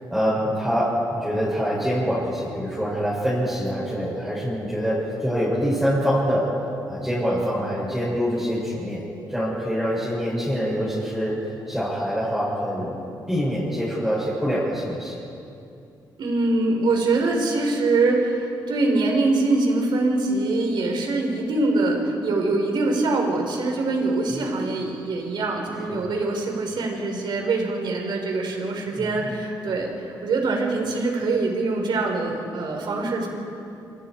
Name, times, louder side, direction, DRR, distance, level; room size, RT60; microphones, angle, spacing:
voice 1, 0.1-6.5 6.9-9.0 9.3-13.0 13.3-15.1 25.9-26.0 29.0-29.2, equal, 5° right, -9 dB, 7.8 m, -25 dB
voice 2, 16.2-33.3, right 2 dB, 70° right, 1 dB, 5.2 m, -23 dB
27.0 x 27.0 x 5.0 m, 2.7 s
cardioid pair, 105°, 8 cm